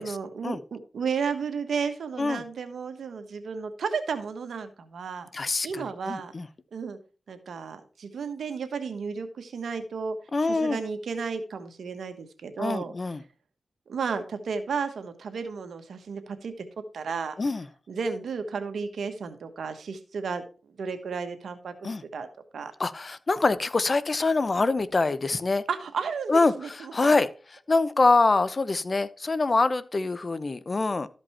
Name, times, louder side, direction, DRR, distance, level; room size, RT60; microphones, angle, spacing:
voice 1, 0.0-5.3 5.6-6.3 6.7-7.0 7.3-10.2 10.5-12.9 13.9-16.6 16.9-17.3 17.9-22.3 22.5-22.7 25.7-26.9, right 5 dB, 90° right, 1.2 m, -33 dB
voice 2, 5.3-6.5 10.3-10.8 12.6-13.2 17.4-17.7 21.8-22.0 22.8-25.6 26.3-27.3 27.7-31.1, left 3 dB, 50° left, 0.8 m, -25 dB
13.0 x 5.3 x 4.3 m
cardioid pair, 50°, 0 cm